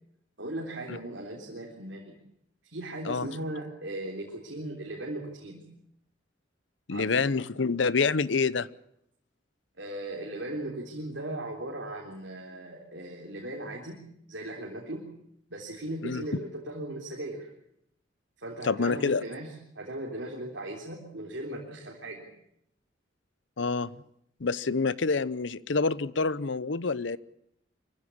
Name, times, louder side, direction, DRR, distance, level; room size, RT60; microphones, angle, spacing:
voice 1, 0.4-2.2 2.7-5.6 6.9-7.3 9.7-14.0 14.3-15.1 15.5-17.5 18.4-22.3, right 1 dB, 70° right, 3.7 m, -38 dB
voice 2, 6.9-8.7 16.0-16.2 18.6-19.2 23.6-23.9 24.4-27.2, left 4 dB, 70° left, 0.8 m, -27 dB
24.0 x 15.5 x 8.7 m
head